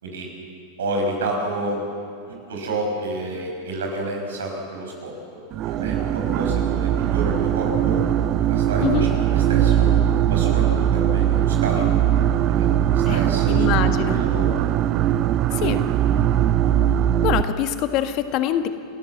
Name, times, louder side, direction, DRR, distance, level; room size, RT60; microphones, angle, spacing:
voice 1, 0.8-1.8 2.3-5.4 5.7-8.0 8.5-9.9 10.3-12.0 12.4-13.8 14.0-14.7 15.5-15.9, right 2 dB, 80° right, 1 dB, 5.7 m, -30 dB
sound 1, 5.5-17.4, right 11 dB, 45° right, 0.6 m, -20 dB
voice 2, 13.5-14.2 15.6-15.8 17.2-18.7, left 11 dB, 50° left, 8 dB, 1.6 m, -24 dB
30.0 x 13.5 x 7.3 m, 2.6 s
hypercardioid pair, 95°, 0 cm